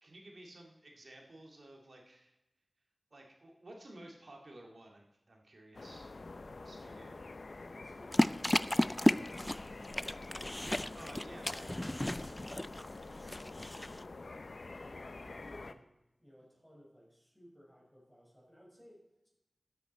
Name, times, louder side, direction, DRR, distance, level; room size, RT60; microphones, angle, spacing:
voice 1, 0.0-2.4 3.1-6.1 6.6-7.2 10.7-12.0, right 1 dB, 75° right, 1 dB, 2.3 m, -54 dB
sound 1, 5.7-15.7, left 3 dB, 75° left, 0.6 m, -47 dB
voice 2, 6.8-7.2 7.5-10.1 12.1-14.1 14.8-15.9 16.2-19.3, equal, 5° right, -2 dB, 5.3 m, -60 dB
sound 2, 8.1-14.0, left 1 dB, 25° left, 0.4 m, -33 dB
13.0 x 9.4 x 4.3 m, 0.93 s
wide cardioid pair, 45°, 0 cm